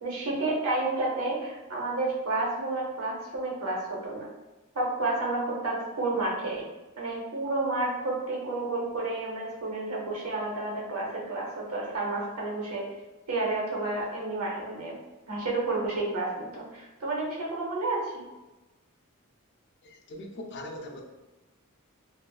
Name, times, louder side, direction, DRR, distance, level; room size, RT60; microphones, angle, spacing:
voice 1, 0.0-4.3 4.7-6.6 7.0-12.9 13.3-15.0 15.3-18.1, right 2 dB, 75° right, -3 dB, 0.7 m, -30 dB
voice 2, 19.8-21.0, left 1 dB, 50° left, 3 dB, 0.4 m, -41 dB
2.4 x 2.4 x 2.2 m, 1.1 s
head